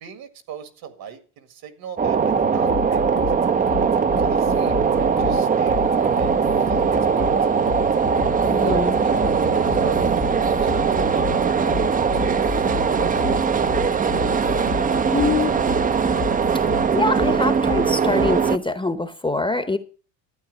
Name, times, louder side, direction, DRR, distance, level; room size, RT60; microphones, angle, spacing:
voice 1, 0.0-3.5 4.2-7.5 8.6-11.0 11.2-13.9, right 8 dB, 60° right, 1.9 m, -38 dB
sound 1, 2.0-18.6, right 6 dB, 20° right, 0.5 m, -20 dB
sound 2, 2.7-18.6, left 11 dB, 75° left, 2.0 m, -33 dB
voice 2, 8.5-9.0 15.1-15.6 16.7-19.8, left 3 dB, 10° left, 0.8 m, -24 dB
12.0 x 8.9 x 5.2 m
cardioid pair, 105°, 41 cm